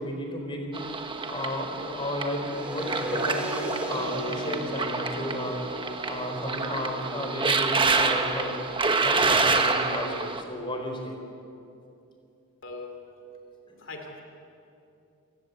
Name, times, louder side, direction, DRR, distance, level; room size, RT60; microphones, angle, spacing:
voice 1, 0.0-5.6 6.1-8.5 9.0-11.2 13.7-14.0, left 1 dB, 25° left, 3 dB, 4.1 m, -33 dB
sound 1, 0.7-10.4, right 3 dB, 25° right, 1.3 m, -28 dB
sound 2, 2.5-8.5, equal, 5° right, 2.7 m, -37 dB
voice 2, 12.6-13.0 13.8-14.2, left 3 dB, 60° left, 4 dB, 3.0 m, -40 dB
29.0 x 19.0 x 8.2 m, 2.7 s
head